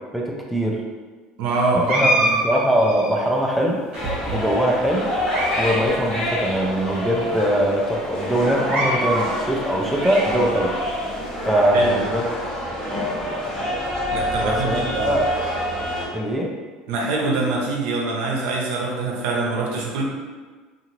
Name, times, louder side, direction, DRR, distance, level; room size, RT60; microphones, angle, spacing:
voice 1, 0.1-0.8 1.7-3.8 4.3-5.1 5.6-10.7 11.5-12.3 14.4-15.2 16.1-16.5, equal, ahead, -2 dB, 0.5 m, -22 dB
voice 2, 1.4-2.3 11.7-12.0 14.1-15.1 16.9-20.0, right 3 dB, 70° right, -2 dB, 0.7 m, -24 dB
sound 1, 1.8-3.3 3.9-4.6 5.1-5.8 6.1-6.2 6.9-7.0 7.3-7.5 8.5-9.3 9.7-10.7, right 1 dB, 45° right, 1.2 m, -25 dB
sound 2, 3.9-16.1, equal, 25° left, 1.1 m, -27 dB
2.7 x 2.5 x 3.0 m, 1.4 s
supercardioid pair, 95°, 3 cm